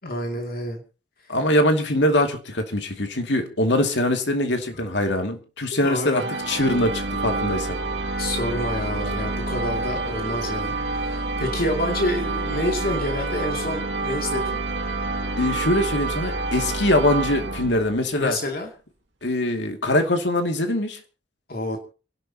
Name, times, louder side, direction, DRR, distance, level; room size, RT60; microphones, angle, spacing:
voice 1, 0.0-0.8 4.7-4.9 5.7-6.3 8.2-14.6 18.2-18.7 21.5-21.8, left 1 dB, 55° left, 2.6 m, -28 dB
voice 2, 1.3-7.8 15.4-18.4 19.2-21.0, left 1 dB, 75° left, 2.4 m, -23 dB
sound 1, 6.1-18.1, right 3 dB, 90° right, 2.2 m, -28 dB
29.0 x 11.5 x 2.9 m
head